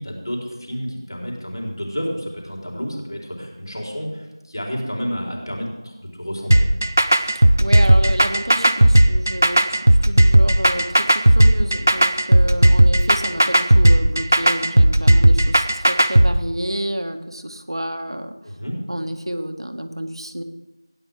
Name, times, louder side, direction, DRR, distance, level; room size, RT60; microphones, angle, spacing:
voice 1, 0.0-6.7 18.4-18.8, equal, 60° left, -2 dB, 4.4 m, -30 dB
sound 1, 6.5-16.3, right 1 dB, 35° right, 0.4 m, -14 dB
voice 2, 7.1-18.3 18.9-20.4, equal, 80° right, 6 dB, 1.4 m, -29 dB
16.5 x 10.0 x 3.8 m, 1.0 s
figure-of-eight pair, 175°, 2 cm